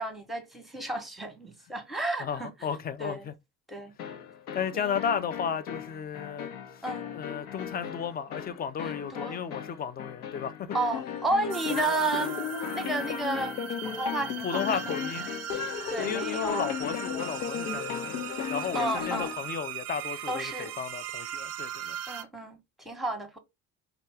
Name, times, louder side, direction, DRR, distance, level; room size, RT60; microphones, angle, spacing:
voice 1, 0.0-2.5 3.0-3.3 3.7-3.9 4.7-4.9 6.8-7.0 8.8-9.4 10.7-12.3 12.6-13.6 13.8-14.8 15.9-16.7 17.1-17.2 18.7-19.3 20.3-20.7 22.1-23.4, right 2 dB, ahead, 1.0 m, -32 dB
voice 2, 2.2-3.3 4.5-6.8 7.1-10.8 14.4-15.3 16.0-18.2 18.5-22.0, left 7 dB, 20° left, 0.5 m, -34 dB
sound 1, 4.0-19.5, left 8 dB, 70° left, 0.8 m, -36 dB
sound 2, 11.5-22.2, right 8 dB, 35° right, 0.6 m, -38 dB
4.3 x 3.0 x 3.2 m
figure-of-eight pair, 55°, 46 cm